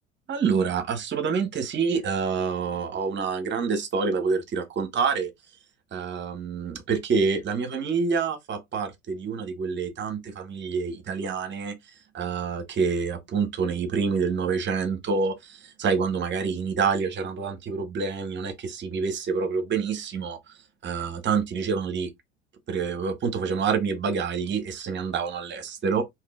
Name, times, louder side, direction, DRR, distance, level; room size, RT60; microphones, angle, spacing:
voice 1, 0.3-5.3 5.9-11.7 12.1-20.4 20.8-22.1 22.7-26.0, right 5 dB, 30° right, 0.9 m, -27 dB
3.5 x 2.9 x 2.3 m
figure-of-eight pair, 70°, 35 cm